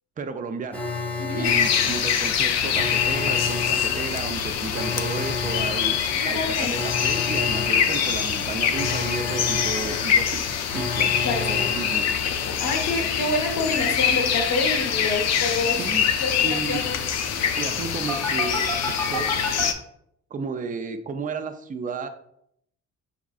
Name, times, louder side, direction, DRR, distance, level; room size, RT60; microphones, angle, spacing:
voice 1, 0.2-0.8 1.3-5.9 6.3-10.4 10.7-12.1 15.7-16.1 16.4-16.8 17.6-19.3 20.3-22.1, right 4 dB, 25° right, 7 dB, 0.4 m, -33 dB
Alarm, 0.7-12.6 18.1-19.6, left 3 dB, 5° left, 0.8 m, -32 dB
voice 2, 1.2-1.5 6.1-6.7 11.2-11.7 12.6-15.8 16.1-17.0, left 3 dB, 80° left, 1 dB, 1.0 m, -27 dB
sound 1, 1.4-19.7, left 8 dB, 60° left, 0.5 m, -24 dB
5.2 x 3.6 x 2.4 m, 0.72 s
cardioid pair, 90°, 30 cm